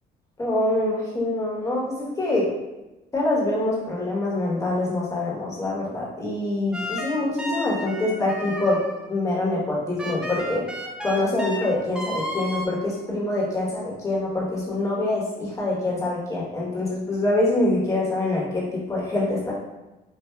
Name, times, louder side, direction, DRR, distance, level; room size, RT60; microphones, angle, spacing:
voice 1, 0.4-2.5 3.1-8.8 9.1-10.6 11.0-19.5, left 2 dB, 20° left, -5 dB, 1.2 m, -25 dB
sound 1, 6.7-9.2 10.0-12.7, left 1 dB, 5° right, 0.5 m, -32 dB
4.4 x 2.3 x 2.3 m, 1.0 s
cardioid pair, 110°, 17 cm